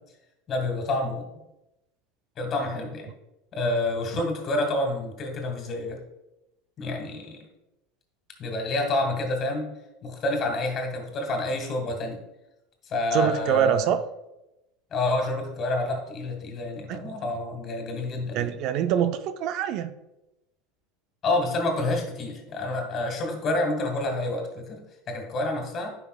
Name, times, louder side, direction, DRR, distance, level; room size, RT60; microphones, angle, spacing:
voice 1, 0.5-1.3 2.4-3.1 3.5-6.0 6.8-7.4 8.4-9.7 10.0-12.2 12.9-13.9 14.9-18.5 21.2-24.8 25.1-26.0, left 2 dB, 40° left, 3 dB, 1.9 m, -28 dB
voice 2, 13.1-14.0 16.9-17.2 18.3-19.9, right 9 dB, 60° right, 10 dB, 0.5 m, -25 dB
9.7 x 5.4 x 2.4 m, 0.92 s
hypercardioid pair, 95°, 0 cm